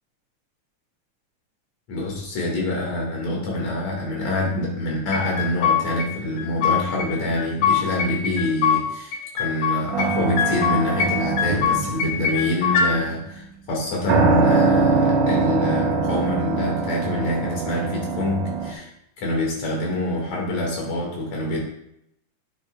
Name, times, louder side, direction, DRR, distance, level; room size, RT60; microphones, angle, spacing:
voice 1, 1.9-18.9 19.2-21.6, left 1 dB, 70° left, -2 dB, 3.3 m, -26 dB
sound 1, 5.1-6.1 6.4-7.1 7.4-8.8 9.1-10.1 10.4-11.1 11.4-12.9, left 7 dB, 85° left, 2.3 m, -22 dB
sound 2, 9.9-12.6 14.1-18.7, right 4 dB, 70° right, 2.1 m, -22 dB
9.0 x 7.9 x 2.4 m, 0.79 s
omnidirectional pair, 3.3 m